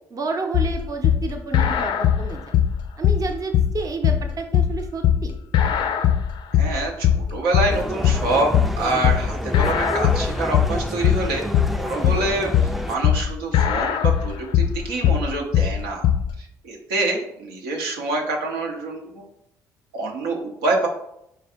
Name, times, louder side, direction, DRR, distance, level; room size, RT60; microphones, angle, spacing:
voice 1, 0.1-2.5 3.0-5.3 11.9-12.2, right 4 dB, 40° right, 3 dB, 0.7 m, -30 dB
sound 1, 0.5-16.3, left 9 dB, 60° left, 0.4 m, -20 dB
voice 2, 6.5-8.5 8.8-11.5 11.7-16.0 16.4-19.2 19.9-20.9, right 2 dB, 80° right, 0 dB, 0.7 m, -26 dB
sound 2, 7.7-13.0, equal, ahead, 0.4 m, -30 dB
4.4 x 2.4 x 3.5 m, 0.78 s
hypercardioid pair, 55°, 9 cm